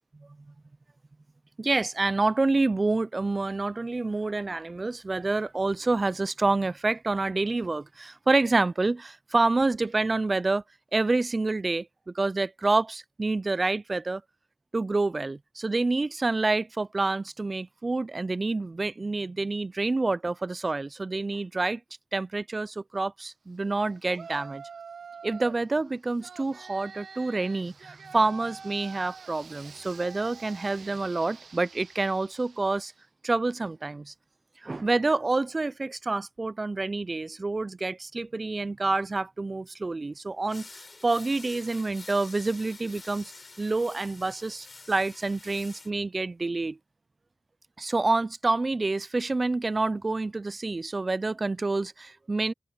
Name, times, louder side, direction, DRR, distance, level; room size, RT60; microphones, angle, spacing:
voice 1, 1.6-10.6 10.9-14.2 14.7-21.8 22.1-24.6 25.2-32.9 33.2-34.1 34.6-40.7 41.0-43.3 43.6-46.8 47.8-52.5, right 3 dB, 40° right, 0.5 m, -28 dB
Yell, 24.1-25.7 26.2-32.9, right 5 dB, 75° right, 1.3 m, -46 dB
sound 1, 40.5-45.9, left 3 dB, 45° left, 3.9 m, -48 dB
cardioid pair, 55°, 0 cm